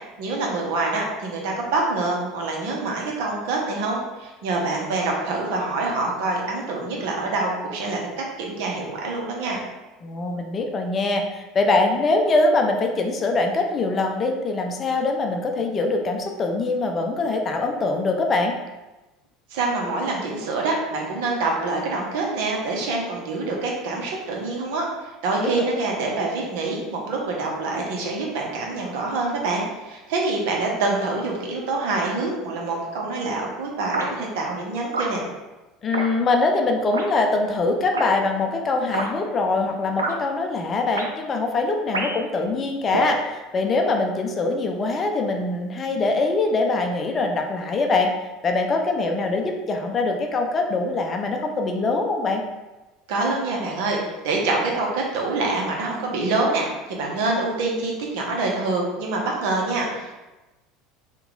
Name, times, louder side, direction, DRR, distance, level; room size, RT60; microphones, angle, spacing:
voice 1, 0.2-9.6 19.5-35.2 53.1-60.2, right 3 dB, 65° right, -1 dB, 0.7 m, -26 dB
voice 2, 10.0-18.5 25.4-25.5 35.8-48.1 48.4-52.4, left 3 dB, 35° left, 3 dB, 0.5 m, -23 dB
sound 1, 33.9-34.1 34.9-35.1 35.9-36.1 36.9-37.1 37.9-38.1 38.9-39.1 40.0-40.1 40.9-41.1 41.9-42.3 42.9-43.2, right 3 dB, 85° right, 0.3 m, -26 dB
2.9 x 2.2 x 3.7 m, 1.1 s
hypercardioid pair, 70°, 0 cm